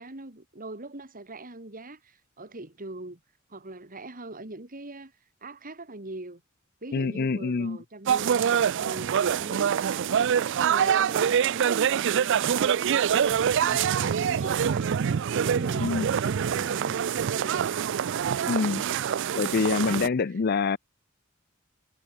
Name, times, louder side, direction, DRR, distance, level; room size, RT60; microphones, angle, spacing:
voice 1, 0.0-3.2 3.5-5.1 5.4-6.4 6.8-17.7, right 2 dB, 40° right, 2.8 m, -42 dB
voice 2, 6.9-7.8 15.8-16.1 18.5-18.8 19.4-20.8, left 4 dB, 50° left, 0.5 m, -26 dB
sound 1, 8.1-20.1, right 8 dB, 60° right, 0.4 m, -25 dB
head